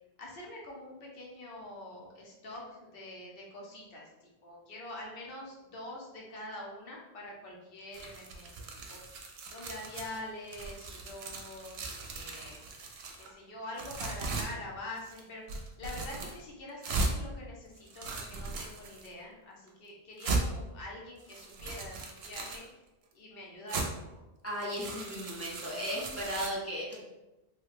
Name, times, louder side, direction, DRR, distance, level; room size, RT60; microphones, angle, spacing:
voice 1, 0.2-8.6 8.9-9.0 9.5-12.7 13.2-22.8 23.1-24.2, left 1 dB, 60° left, -2 dB, 1.0 m, -45 dB
sound 1, 7.9-10.2 10.5-13.3 13.8-14.5 15.0-15.2 15.5-16.4 16.8-17.1 17.8-19.1 19.7-19.8 20.2-20.4 21.2-22.6 23.7-23.9 24.5-26.5, right 3 dB, 75° right, 0.8 m, -37 dB
voice 2, 24.4-27.0, equal, 20° left, -5 dB, 0.5 m, -36 dB
3.2 x 2.2 x 3.2 m, 1.0 s
omnidirectional pair, 1.1 m